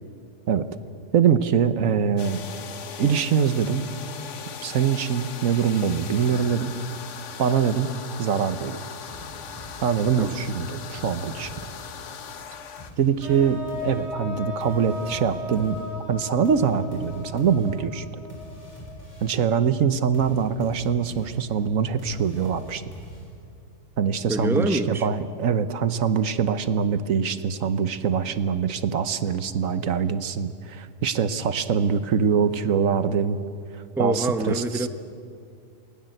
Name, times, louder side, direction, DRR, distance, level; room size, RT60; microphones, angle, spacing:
voice 1, 1.1-2.4 3.0-3.9 4.6-6.7 7.4-7.9 8.2-8.8 9.8-11.5 13.0-15.8 16.1-18.0 19.2-22.8 24.0-33.4 34.0-34.6, right 7 dB, 80° right, 12 dB, 1.4 m, -23 dB
sound 1, 2.2-12.9, left 7 dB, 65° left, 1.3 m, -39 dB
sound 2, 9.1-12.1 12.8-19.5 20.1-23.6, left 1 dB, 25° left, 6.6 m, -44 dB
sound 3, 13.2-19.3, left 2 dB, 80° left, 6.6 m, -37 dB
voice 2, 24.3-25.1 34.0-34.9, right 2 dB, ahead, 9 dB, 0.8 m, -25 dB
28.0 x 20.5 x 7.9 m, 2.3 s
omnidirectional pair, 1.4 m